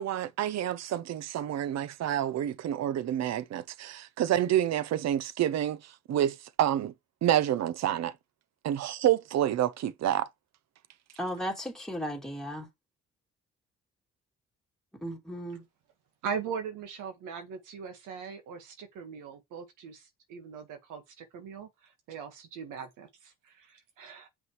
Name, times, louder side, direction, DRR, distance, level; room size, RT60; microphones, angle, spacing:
voice 1, 0.0-5.8 6.1-6.9 7.2-8.1 8.6-10.3, right 11 dB, 60° right, 0.7 m, -28 dB
voice 2, 11.2-12.7 15.0-15.6, equal, ahead, 2.8 m, -35 dB
voice 3, 16.2-24.3, right 6 dB, 90° right, 1.7 m, -40 dB
7.4 x 5.5 x 3.2 m
cardioid pair, 90°, 30 cm